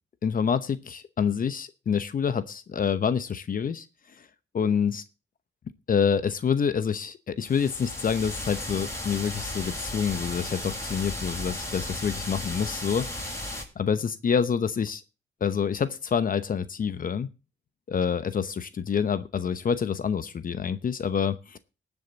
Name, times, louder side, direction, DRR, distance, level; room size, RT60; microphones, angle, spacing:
voice 1, 0.2-3.9 4.2-4.3 4.5-5.0 5.9-15.0 15.4-17.3 17.9-21.6, left 7 dB, 50° left, 13 dB, 0.9 m, -27 dB
sound 1, 7.4-13.6, left 1 dB, 15° left, 6.7 m, -35 dB
19.5 x 7.2 x 4.1 m, 0.31 s
cardioid pair, 95°, 19 cm